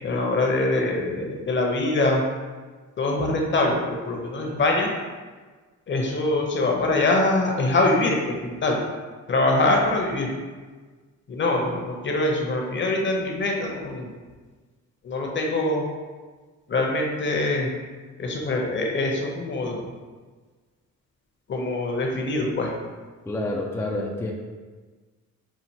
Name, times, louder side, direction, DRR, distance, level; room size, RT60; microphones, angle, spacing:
voice 1, 0.0-2.2 3.0-4.9 5.9-8.8 9.3-10.3 11.3-14.1 15.0-15.8 16.7-17.7 18.2-19.8 21.5-22.7, left 2 dB, 40° left, 1 dB, 0.8 m, -23 dB
voice 2, 23.2-24.3, left 1 dB, 10° left, -2 dB, 0.4 m, -28 dB
5.7 x 2.4 x 2.8 m, 1.4 s
cardioid pair, 90°, 30 cm